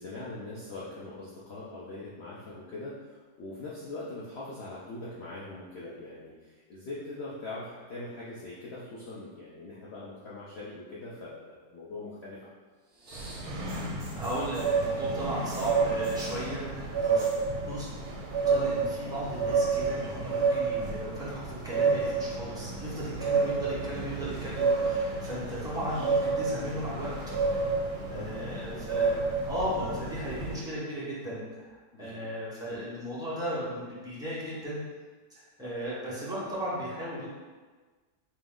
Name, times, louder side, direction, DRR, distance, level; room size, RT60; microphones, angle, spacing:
voice 1, 0.0-12.6 18.0-18.2 23.6-23.7 25.7-25.8 28.0-29.3 31.9-32.2, left 2 dB, 80° left, -7 dB, 0.5 m, -42 dB
sound 1, 12.9-14.8 15.5-16.4 17.0-17.5 17.7-18.2 18.6-19.3 20.1-20.2, right 1 dB, 50° right, 1.2 m, -49 dB
sound 2, 13.1-30.6, right 4 dB, 70° right, 1.1 m, -30 dB
voice 2, 14.2-17.3 17.6-17.9 18.5-27.1 28.1-29.1 29.5-31.7 32.0-34.8 35.3-37.3, equal, 5° right, -9 dB, 0.5 m, -36 dB
3.1 x 3.0 x 3.6 m, 1.4 s
omnidirectional pair, 1.8 m